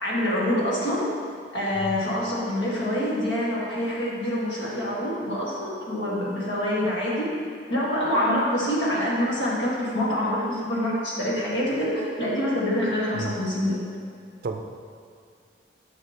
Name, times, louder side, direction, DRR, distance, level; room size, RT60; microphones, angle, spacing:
voice 1, 0.0-1.0 1.5-7.3 7.7-13.8, left 1 dB, 75° left, -6 dB, 1.6 m, -26 dB
voice 2, 1.8-2.0 13.2-13.3 14.4-14.6, right 3 dB, 55° right, 5 dB, 0.4 m, -31 dB
6.4 x 6.3 x 2.9 m, 2.2 s
head